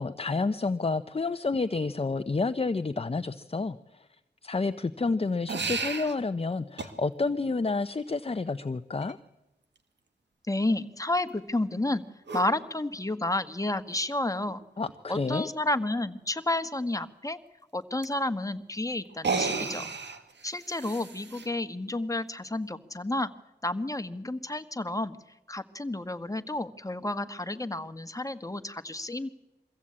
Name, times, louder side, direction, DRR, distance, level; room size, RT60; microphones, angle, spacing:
voice 1, 0.0-3.8 4.4-9.2 14.8-15.5, left 3 dB, 35° left, 11 dB, 0.7 m, -29 dB
sound 1, 5.5-6.1 6.8-6.9 9.0-9.1 12.3-12.5 13.9-14.0 14.5-14.6 14.9-15.0 18.0-18.1 19.1-21.5, right 4 dB, 90° right, 1.6 m, -32 dB
voice 2, 10.5-12.0 12.3-14.6 15.1-17.4 17.7-19.9 20.4-23.3 23.6-25.2 25.5-29.3, left 2 dB, 20° left, 9 dB, 1.4 m, -31 dB
23.0 x 15.5 x 8.7 m, 0.97 s
cardioid pair, 50°, 18 cm